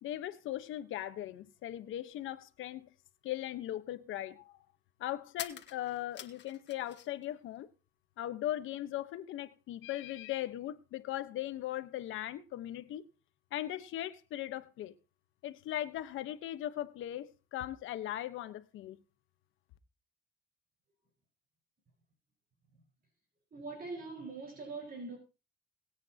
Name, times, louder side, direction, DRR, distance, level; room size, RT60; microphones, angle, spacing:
voice 1, 0.0-2.9 3.2-4.5 5.0-7.7 8.2-13.1 13.5-14.9 15.4-19.0, left 13 dB, 85° left, 1.2 m, -39 dB
sound 1, 3.1-3.2 5.3-7.3 7.6-8.4, left 9 dB, 65° left, 1.7 m, -47 dB
voice 2, 23.5-25.2, right 3 dB, 50° right, 5.0 m, -43 dB
22.0 x 8.8 x 2.9 m
cardioid pair, 90°, 20 cm